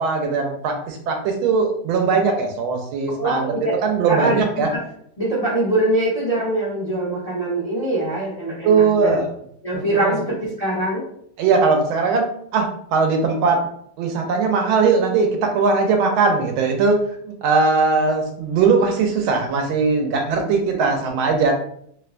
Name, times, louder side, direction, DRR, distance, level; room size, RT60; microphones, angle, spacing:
voice 1, 0.0-3.5 3.8-4.7 8.6-9.3 9.7-10.1 11.4-12.3 12.5-13.6 14.0-17.0 17.2-21.5, right 4 dB, 80° right, 3 dB, 1.4 m, -19 dB
voice 2, 3.2-3.7 4.1-4.8 5.2-9.3 9.6-11.0, right 1 dB, 50° left, -8 dB, 0.4 m, -23 dB
3.6 x 2.1 x 2.5 m, 0.67 s
omnidirectional pair, 2.2 m